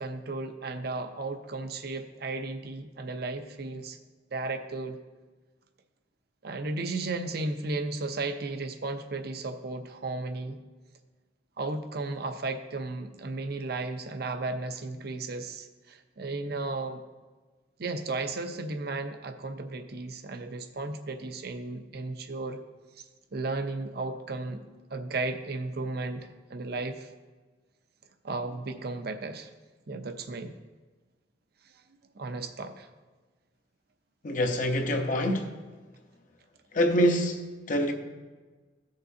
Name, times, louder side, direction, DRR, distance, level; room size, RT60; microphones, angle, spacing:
voice 1, 0.0-4.0 4.3-5.0 6.4-10.6 11.6-17.0 17.8-22.6 23.3-24.6 24.9-27.1 28.2-29.5 29.9-30.5 32.2-32.9, right 3 dB, 60° right, 0.7 m, -34 dB
voice 2, 34.2-35.5 36.7-37.9, equal, 45° left, 0.8 m, -25 dB
16.0 x 6.6 x 2.7 m
head